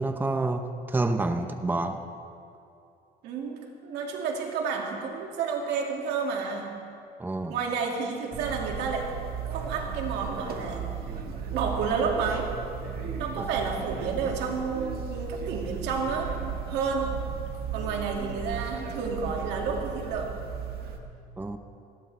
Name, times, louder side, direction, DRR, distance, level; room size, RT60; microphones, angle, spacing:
voice 1, 0.0-2.0 7.2-7.5 13.4-13.5 21.4-21.6, right 2 dB, 10° right, 7 dB, 0.8 m, -28 dB
voice 2, 3.2-6.8 7.5-9.1 9.5-10.9 11.5-12.6 13.2-16.4 16.7-17.2 17.7-20.4, right 5 dB, 85° right, 0 dB, 2.3 m, -30 dB
sound 1, 8.3-21.0, right 7 dB, 65° right, 1.8 m, -35 dB
19.5 x 17.5 x 3.4 m, 2.5 s
cardioid pair, 110°, 17 cm